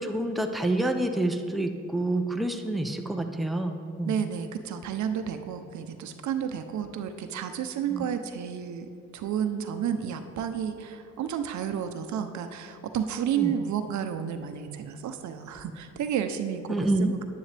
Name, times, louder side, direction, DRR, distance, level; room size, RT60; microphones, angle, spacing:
voice 1, 0.0-4.2 7.9-8.0 13.4-13.5 16.7-17.1, right 1 dB, ahead, 4 dB, 0.7 m, -28 dB
voice 2, 4.0-8.9 9.1-17.2, right 8 dB, 70° right, 8 dB, 0.8 m, -31 dB
10.5 x 10.0 x 3.4 m, 2.4 s
cardioid pair, 90°, 30 cm